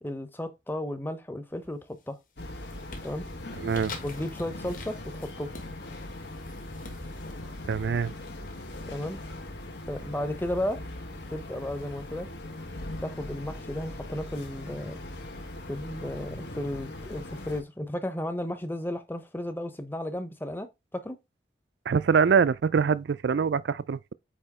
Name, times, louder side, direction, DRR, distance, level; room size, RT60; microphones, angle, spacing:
voice 1, 0.0-2.2 3.0-3.3 4.0-5.5 8.9-9.2 9.9-10.8 11.3-12.3 13.0-15.0 15.7-21.2, left 1 dB, 10° left, 0.7 m, -34 dB
sound 1, 1.6-2.0 2.4-9.0, left 3 dB, 50° left, 1.6 m, -47 dB
sound 2, 2.4-17.6, left 1 dB, 80° left, 1.5 m, -40 dB
voice 2, 3.6-3.9 7.7-8.1 21.9-24.1, right 6 dB, 80° right, 0.4 m, -24 dB
8.6 x 2.9 x 4.8 m
head